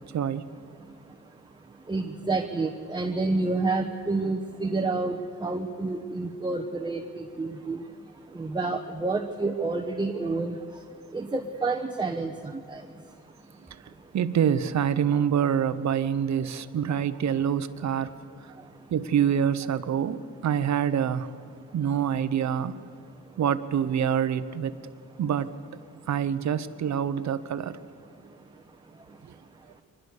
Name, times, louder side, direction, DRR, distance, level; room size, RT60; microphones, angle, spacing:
voice 1, 0.1-0.5 14.1-18.1 18.9-21.3 21.7-22.8 23.4-24.8 25.2-25.5 26.1-27.8, right 8 dB, 60° right, 12 dB, 1.1 m, -26 dB
voice 2, 1.9-7.8 8.3-10.5 11.1-12.3 12.7-12.8, right 3 dB, 15° right, 4 dB, 1.2 m, -29 dB
23.5 x 20.5 x 6.8 m, 2.3 s
cardioid pair, 85°, 31 cm